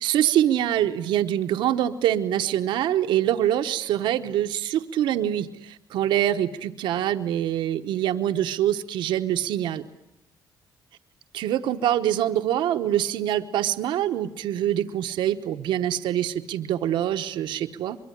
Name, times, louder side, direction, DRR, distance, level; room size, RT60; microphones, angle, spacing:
voice 1, 0.0-9.9 11.3-18.0, right 11 dB, 85° right, 7 dB, 1.1 m, -24 dB
23.5 x 23.0 x 10.0 m, 0.85 s
cardioid pair, 95°, 8 cm